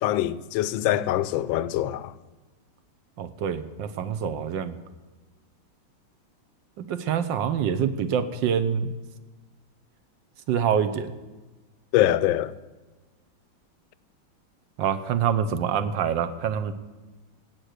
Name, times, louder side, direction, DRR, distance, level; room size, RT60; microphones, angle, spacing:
voice 1, 0.0-2.1 11.9-12.5, left 13 dB, 75° left, 1.3 m, -24 dB
voice 2, 3.2-4.8 6.8-8.9 10.5-11.1 14.8-16.7, right 8 dB, 70° right, 1.5 m, -26 dB
17.0 x 9.2 x 6.5 m
omnidirectional pair, 2.3 m